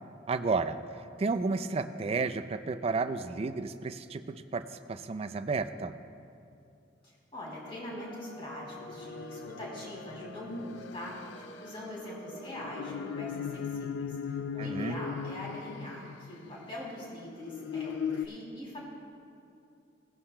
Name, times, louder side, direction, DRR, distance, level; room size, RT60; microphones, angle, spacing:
voice 1, 0.3-0.8 1.2-4.6 4.9-5.9 14.6-15.0, right 4 dB, 30° right, 11 dB, 0.3 m, -32 dB
voice 2, 7.0-18.8, left 1 dB, 30° left, -5 dB, 2.8 m, -43 dB
sound 1, 7.6-13.3, left 1 dB, 50° left, 1.0 m, -49 dB
sound 2, 8.8-16.6 17.3-18.3, left 7 dB, 70° left, 0.3 m, -39 dB
17.0 x 11.0 x 2.2 m, 2.6 s
head